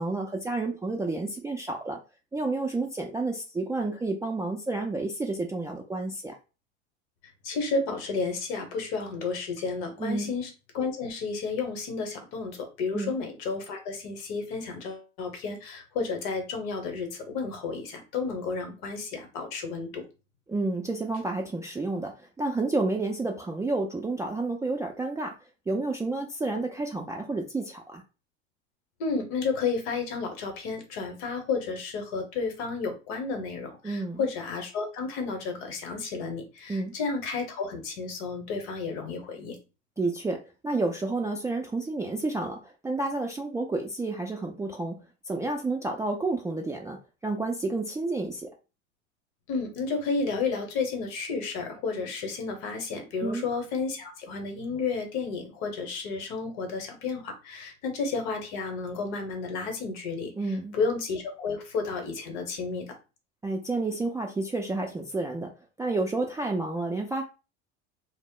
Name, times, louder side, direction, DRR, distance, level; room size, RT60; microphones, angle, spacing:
voice 1, 0.0-2.0 2.3-6.3 10.0-10.3 12.9-13.1 20.5-22.1 22.4-25.3 25.7-28.0 33.8-34.2 36.7-36.9 40.0-45.0 45.3-48.5 53.2-53.4 60.4-60.8 63.4-65.5 65.8-67.2, right 2 dB, 10° right, 0 dB, 0.3 m, -30 dB
voice 2, 7.4-20.0 29.0-39.6 49.5-60.3 60.7-62.9, left 4 dB, 75° left, 5 dB, 0.9 m, -32 dB
2.0 x 2.0 x 3.6 m, 0.31 s
supercardioid pair, 95°, 32 cm